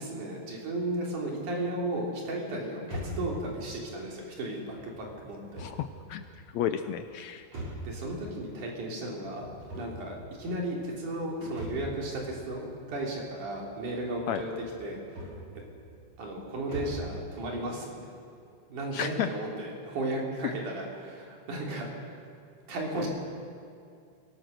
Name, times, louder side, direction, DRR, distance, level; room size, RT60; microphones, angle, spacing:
voice 1, 0.0-5.6 7.8-9.5 9.8-14.5 14.8-15.2 16.2-18.1 18.7-22.0 22.7-23.1, right 1 dB, 75° right, -1 dB, 4.7 m, -34 dB
sound 1, 2.8-17.2, right 1 dB, 55° right, 7.4 m, -44 dB
voice 2, 5.6-6.2 6.5-7.5 14.3-14.4 18.9-19.3, left 10 dB, 75° left, 9 dB, 1.7 m, -32 dB
23.5 x 18.0 x 6.5 m, 2.4 s
omnidirectional pair, 3.7 m